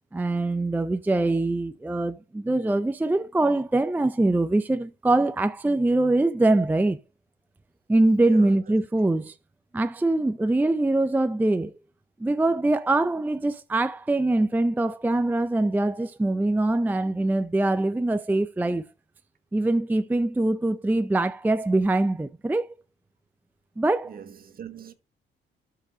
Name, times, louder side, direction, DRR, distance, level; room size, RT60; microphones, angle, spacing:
voice 1, 0.1-7.0 7.9-9.3 9.7-11.7 12.2-18.8 19.5-22.7 23.8-24.2, right 2 dB, 10° right, 0.4 m, -23 dB
voice 2, 8.2-8.8 24.1-24.9, right 8 dB, 50° right, 1.5 m, -42 dB
12.5 x 4.7 x 3.7 m
cardioid pair, 90°, 20 cm